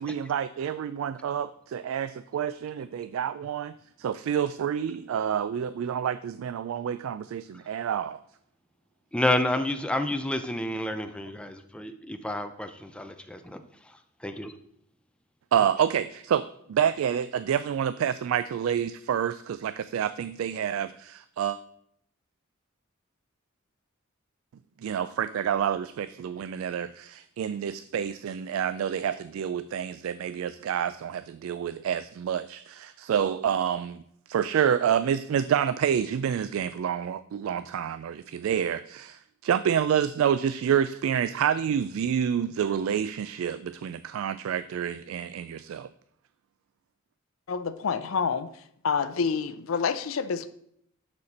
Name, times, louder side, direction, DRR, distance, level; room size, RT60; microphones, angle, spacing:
voice 1, 0.0-3.7 4.0-8.2 15.5-21.6 24.8-34.0 34.3-45.9, right 8 dB, 75° right, 13 dB, 0.3 m, -28 dB
voice 2, 9.1-13.6 14.2-14.5, left 1 dB, 5° left, 7 dB, 0.6 m, -29 dB
voice 3, 47.5-48.5 48.8-50.5, left 5 dB, 75° left, 12 dB, 0.5 m, -28 dB
11.5 x 4.2 x 4.2 m, 0.70 s
head